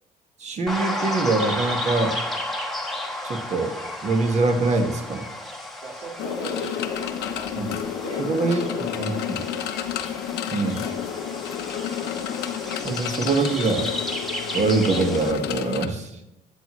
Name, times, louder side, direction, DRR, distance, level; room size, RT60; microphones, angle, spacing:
voice 1, 0.4-2.2 3.2-5.3 7.6-7.7 8.2-8.7 9.0-9.4 10.5-10.8 12.8-13.9 14.5-16.1, right 3 dB, 40° right, 4 dB, 1.8 m, -24 dB
sound 1, 0.7-15.3, left 1 dB, ahead, 1.6 m, -33 dB
voice 2, 5.8-7.5 8.0-9.6 12.9-13.5, right 2 dB, 55° right, -7 dB, 3.7 m, -39 dB
sound 2, 6.2-15.9, left 9 dB, 80° left, 1.0 m, -30 dB
21.5 x 7.8 x 3.2 m, 0.91 s
cardioid pair, 110°, 17 cm